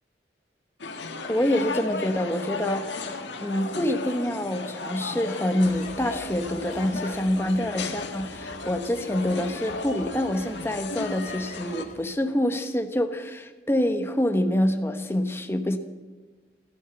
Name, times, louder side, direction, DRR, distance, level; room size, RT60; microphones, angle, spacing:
sound 1, 0.8-11.8, left 3 dB, 75° left, 1.5 m, -35 dB
voice 1, 1.2-15.8, left 1 dB, 15° left, 6 dB, 1.0 m, -26 dB
sound 2, 5.6-12.1, left 1 dB, 40° left, 1.5 m, -45 dB
14.5 x 11.0 x 7.9 m, 1.3 s
head